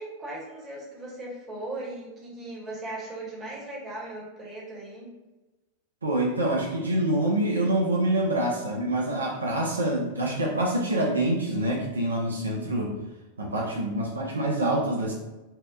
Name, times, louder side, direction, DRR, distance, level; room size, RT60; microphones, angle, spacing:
voice 1, 0.0-5.1, right 2 dB, 20° right, -5 dB, 0.9 m, -38 dB
voice 2, 6.0-12.9 13.4-15.1, right 1 dB, 75° right, -2 dB, 0.4 m, -26 dB
2.7 x 2.0 x 2.3 m, 1.1 s
figure-of-eight pair, 90°, 0 cm